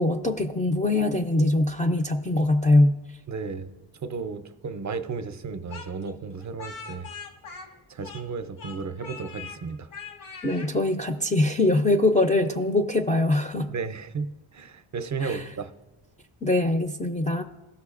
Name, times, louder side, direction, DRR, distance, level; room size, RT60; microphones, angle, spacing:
voice 1, 0.0-2.9 10.4-13.7 15.2-15.4 16.4-17.4, left 2 dB, 15° left, 5 dB, 0.4 m, -22 dB
voice 2, 3.3-3.7 4.0-7.1 7.9-9.9 13.7-15.7, right 5 dB, 35° right, 10 dB, 0.5 m, -33 dB
Speech, 5.7-8.3 8.6-9.6 9.9-10.7, left 5 dB, 90° left, 1.3 m, -41 dB
16.0 x 6.3 x 2.4 m, 1.1 s
cardioid pair, 110°, 49 cm